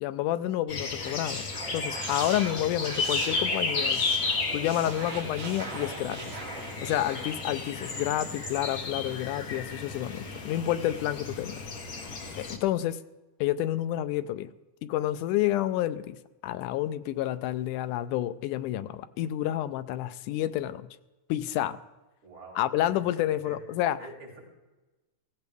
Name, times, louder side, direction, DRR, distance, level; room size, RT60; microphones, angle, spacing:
voice 1, 0.0-1.5 1.7-4.0 4.5-6.4 6.8-11.7 12.4-13.0 13.4-14.5 14.8-16.2 16.4-20.9 21.3-21.8 22.6-24.0, left 13 dB, 85° left, 12 dB, 2.2 m, -29 dB
sound 1, 0.7-12.6, left 4 dB, 45° left, 1.1 m, -33 dB
sound 2, 0.8-8.9, right 3 dB, 80° right, 4.4 m, -41 dB
voice 2, 22.2-23.7 24.0-24.4, right 2 dB, 40° right, -7 dB, 7.2 m, -47 dB
17.5 x 16.0 x 3.5 m, 1.1 s
omnidirectional pair, 3.6 m